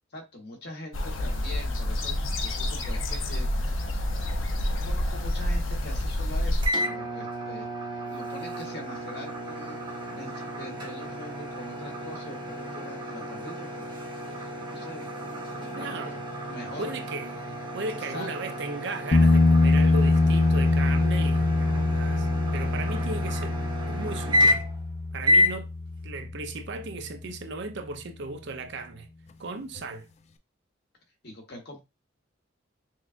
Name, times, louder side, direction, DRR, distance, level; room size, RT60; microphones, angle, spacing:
voice 1, 0.1-3.8 4.7-14.0 14.3-15.1 15.5-16.2 16.5-16.9 17.9-18.4 31.2-31.8, left 1 dB, 55° left, 1.2 m, -43 dB
sound 1, 0.9-6.7, left 1 dB, 75° left, 0.7 m, -28 dB
sound 2, 6.6-24.9 25.2-25.6, left 1 dB, 25° right, 0.9 m, -31 dB
voice 2, 15.7-16.2 16.8-22.3 22.5-23.6 23.9-24.6 25.1-25.7 26.0-29.1 29.4-30.1, right 3 dB, 60° right, 0.5 m, -36 dB
sound 3, 19.1-26.7 29.8-29.9, left 2 dB, 35° left, 0.3 m, -23 dB
6.2 x 2.3 x 2.5 m
head